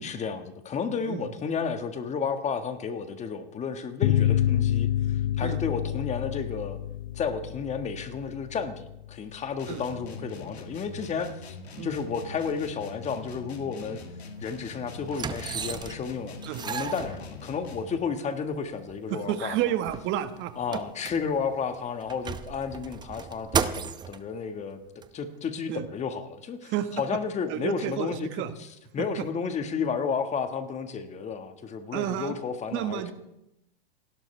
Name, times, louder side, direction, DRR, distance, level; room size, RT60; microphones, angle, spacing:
voice 1, 0.0-6.8 7.1-11.6 11.8-14.0 14.4-16.4 16.6-19.6 20.6-24.8 25.1-28.3 28.9-33.1, left 6 dB, 20° left, 8 dB, 1.6 m, -32 dB
sound 1, 4.0-9.1, left 11 dB, 60° left, 1.2 m, -27 dB
sound 2, 9.6-18.1, left 4 dB, 90° left, 2.1 m, -43 dB
sound 3, 14.3-14.4 15.1-16.1 16.4-17.8 18.5-18.6 18.9-19.0 19.4-21.6 22.0-24.2 25.0-25.1, right 6 dB, 15° right, 0.7 m, -34 dB
voice 2, 19.1-20.8 25.7-25.9 26.6-27.0 27.5-28.5 29.0-29.1 31.9-32.3 32.7-33.1, right 11 dB, 40° right, 10 dB, 1.5 m, -31 dB
28.5 x 12.0 x 3.3 m, 0.85 s
hypercardioid pair, 115°, 31 cm